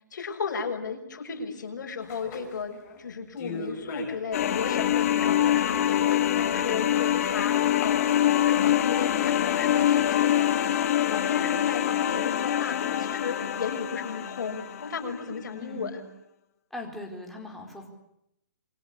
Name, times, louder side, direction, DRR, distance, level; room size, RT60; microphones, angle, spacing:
voice 1, 0.1-16.0, left 5 dB, 70° left, 3 dB, 6.6 m, -35 dB
sound 1, 2.1-3.0 3.4-4.3 4.5-10.8, left 4 dB, 25° left, 5.9 m, -42 dB
sound 2, 4.3-15.1, left 11 dB, 50° left, 2.1 m, -25 dB
voice 2, 15.5-16.0 16.7-17.9, left 1 dB, ahead, 0 dB, 4.6 m, -40 dB
28.0 x 24.0 x 8.6 m, 0.81 s
hypercardioid pair, 155°, 10 cm